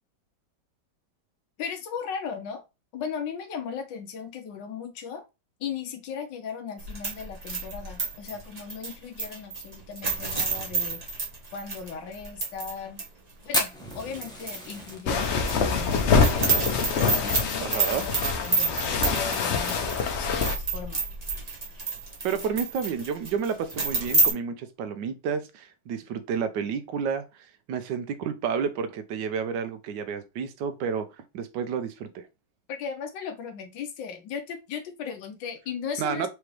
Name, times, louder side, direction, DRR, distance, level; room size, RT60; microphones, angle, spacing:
voice 1, 1.6-2.6 2.9-5.2 5.6-11.0 11.5-13.0 13.4-16.7 17.0-21.0 32.7-36.3, left 6 dB, 85° left, 1.5 m, -37 dB
sound 1, 6.8-12.7 13.0-13.1 13.6-14.9 15.2-24.3, right 3 dB, 30° right, 0.9 m, -29 dB
Fire, 13.5-18.0 18.3-18.4 18.6-18.7 19.1-19.5 20.1-20.2 21.2-21.4, left 1 dB, 5° left, 0.6 m, -33 dB
sound 2, 15.1-20.6, left 5 dB, 60° left, 0.7 m, -25 dB
voice 2, 17.6-18.0 22.2-27.2 27.7-31.1 31.3-32.3 36.0-36.3, right 6 dB, 80° right, 1.4 m, -30 dB
4.9 x 3.0 x 3.2 m
omnidirectional pair, 1.9 m